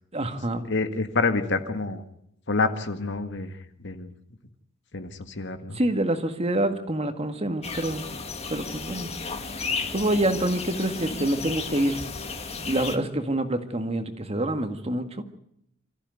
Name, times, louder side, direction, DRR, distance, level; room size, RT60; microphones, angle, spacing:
voice 1, 0.1-0.7 5.7-8.0 8.5-9.1 9.7-12.0 12.6-15.2, right 1 dB, 30° right, 8 dB, 1.9 m, -26 dB
voice 2, 0.6-2.0 2.5-3.6 3.8-4.1 4.9-5.8, left 3 dB, 60° left, 8 dB, 1.8 m, -27 dB
sound 1, 7.6-13.0, left 4 dB, 30° left, 1.9 m, -34 dB
26.5 x 14.5 x 9.5 m, 0.76 s
head